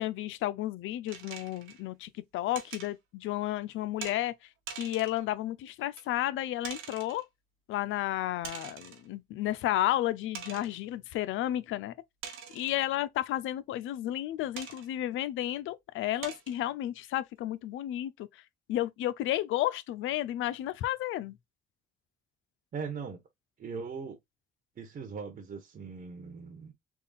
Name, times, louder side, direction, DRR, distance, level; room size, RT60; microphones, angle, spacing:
voice 1, 0.0-4.3 4.8-7.2 7.7-11.9 12.5-18.3 18.7-21.4, left 14 dB, 85° left, 0.5 m, -32 dB
sound 1, 1.1-1.8 2.5-2.9 4.0-4.2 4.7-5.2 6.0-6.1 6.6-7.2 8.4-9.1 9.6-9.7 10.3-10.8 12.2-12.8 14.6-14.9 15.5-15.6 16.2-16.6, right 7 dB, 90° right, 1.1 m, -43 dB
voice 2, 22.7-23.2 23.6-24.2 24.8-26.7, right 5 dB, 45° right, 1.2 m, -39 dB
3.7 x 2.3 x 4.0 m
cardioid pair, 90°, 20 cm